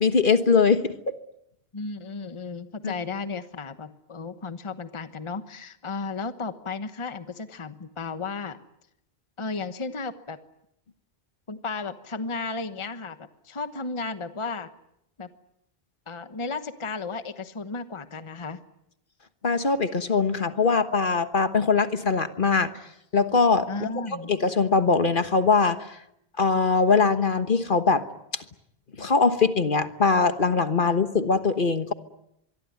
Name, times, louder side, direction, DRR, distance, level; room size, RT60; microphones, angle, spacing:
voice 1, 0.0-1.1 2.8-2.9 19.4-22.7 23.1-25.9 26.4-28.0 28.3-28.4 29.0-31.9, left 4 dB, 55° left, 10 dB, 1.5 m, -22 dB
voice 2, 1.7-8.6 9.4-10.4 11.5-14.7 15.2-15.3 16.1-18.6 23.7-24.3 30.8-31.0, left 4 dB, 30° left, 10 dB, 1.2 m, -34 dB
25.0 x 23.0 x 9.4 m, 0.79 s
omnidirectional pair, 1.1 m